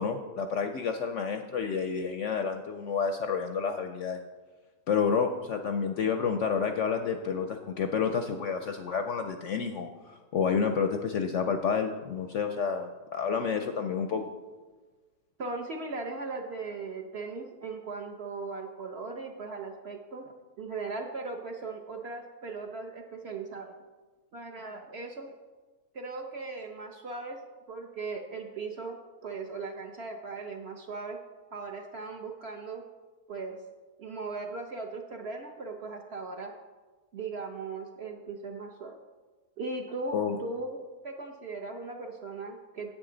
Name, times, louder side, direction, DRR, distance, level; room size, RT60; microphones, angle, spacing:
voice 1, 0.0-4.2 4.9-14.2 40.1-40.4, left 6 dB, 65° left, 6 dB, 0.7 m, -29 dB
voice 2, 15.4-20.3 20.6-23.8 24.3-25.3 25.9-27.4 27.7-31.2 31.5-32.8 33.3-33.6 34.0-36.5 37.1-39.0 39.6-42.9, right 3 dB, 55° right, 3 dB, 0.7 m, -38 dB
10.0 x 8.2 x 3.8 m, 1.3 s
omnidirectional pair, 1.7 m